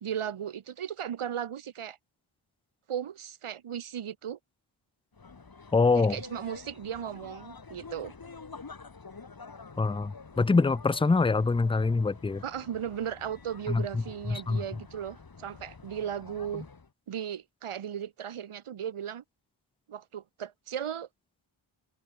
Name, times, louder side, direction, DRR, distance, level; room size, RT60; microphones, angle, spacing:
voice 1, 0.0-2.0 2.9-4.4 5.9-8.1 12.4-16.7 17.1-19.2 19.9-21.1, right 9 dB, 80° right, 1.8 m, -36 dB
sound 1, 5.1-16.9, left 4 dB, 45° left, 5.1 m, -48 dB
voice 2, 5.7-6.2 9.8-12.4 13.7-14.0 14.3-14.6, left 4 dB, 10° left, 0.4 m, -25 dB
open air
cardioid pair, 75°, 50 cm